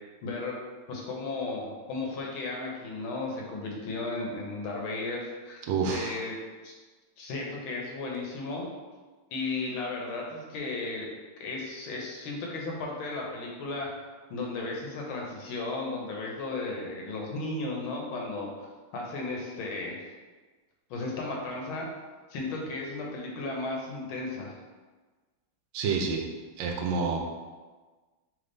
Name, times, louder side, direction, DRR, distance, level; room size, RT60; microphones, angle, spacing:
voice 1, 0.2-0.6 0.9-6.4 6.6-6.7 7.2-8.7 9.3-14.0 14.3-18.7 18.9-20.0 20.9-21.9 22.3-24.6, left 3 dB, 85° left, -1 dB, 1.7 m, -35 dB
voice 2, 5.7-6.2 25.7-26.2 26.6-27.2, right 5 dB, 75° right, 2 dB, 1.3 m, -28 dB
3.7 x 3.4 x 3.9 m, 1.3 s
omnidirectional pair, 2.2 m